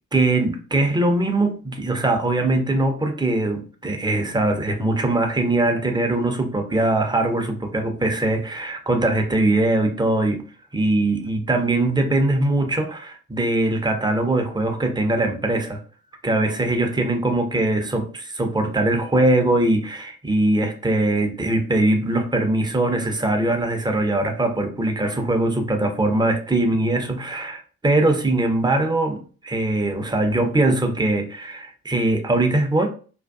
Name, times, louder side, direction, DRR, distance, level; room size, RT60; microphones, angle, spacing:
voice 1, 0.1-10.4 10.7-15.8 16.2-32.9, right 2 dB, 15° right, 4 dB, 0.5 m, -21 dB
2.5 x 2.2 x 2.3 m, 0.39 s
figure-of-eight pair, 40°, 34 cm